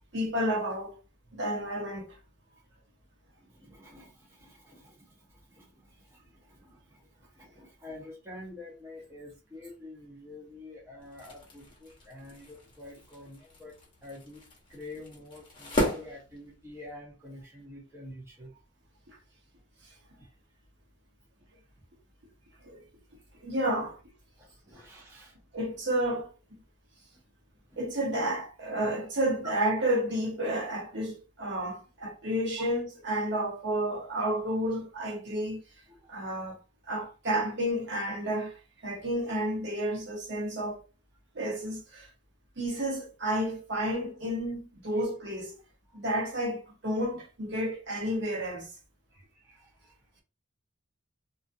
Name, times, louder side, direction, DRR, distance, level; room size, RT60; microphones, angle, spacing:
voice 1, 0.1-1.0 1.3-2.2 19.1-19.2 22.6-22.8 23.4-23.9 25.5-26.6 27.8-35.6 36.1-36.6 36.9-40.8 41.3-42.1 42.6-45.5 45.9-48.7, right 1 dB, 55° right, 0.9 m, -31 dB
voice 2, 3.4-13.7 14.0-14.4 14.7-18.5 24.4-25.4 27.1-27.2 28.7-28.9 35.9-36.3 44.9-45.0 45.9-46.0 49.1-50.2, left 2 dB, 10° right, 0.6 m, -48 dB
sound 1, 11.0-17.0, left 1 dB, 25° left, 0.9 m, -36 dB
2.5 x 2.4 x 2.6 m
head